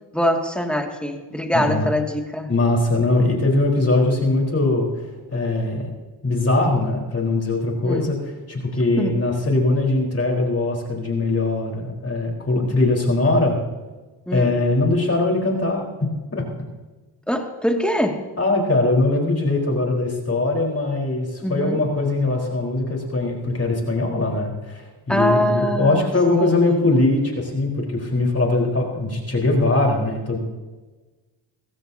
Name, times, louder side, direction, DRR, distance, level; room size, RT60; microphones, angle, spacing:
voice 1, 0.1-2.5 7.8-8.1 9.0-9.2 14.3-14.6 17.3-18.2 21.4-21.9 25.1-26.9, equal, ahead, 2 dB, 2.3 m, -23 dB
voice 2, 1.5-1.9 2.5-5.9 6.2-13.6 14.3-15.8 16.3-16.4 18.4-30.4, left 2 dB, 30° left, -1 dB, 4.4 m, -21 dB
21.5 x 16.5 x 2.9 m, 1.2 s
cardioid pair, 80°, 49 cm